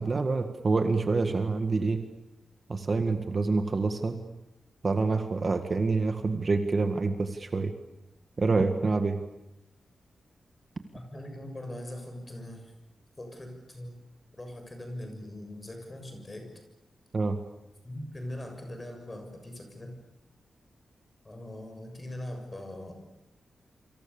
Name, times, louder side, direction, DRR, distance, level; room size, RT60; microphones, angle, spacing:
voice 1, 0.0-2.0 2.7-4.2 4.8-7.7 8.4-9.2 17.1-17.4, right 3 dB, 35° right, 7 dB, 1.8 m, -27 dB
voice 2, 10.9-12.7 13.2-13.9 14.4-16.5 17.8-20.0 21.2-22.9, left 1 dB, 20° left, 5 dB, 6.9 m, -41 dB
28.5 x 26.0 x 7.1 m, 0.88 s
wide cardioid pair, 150°, 0 cm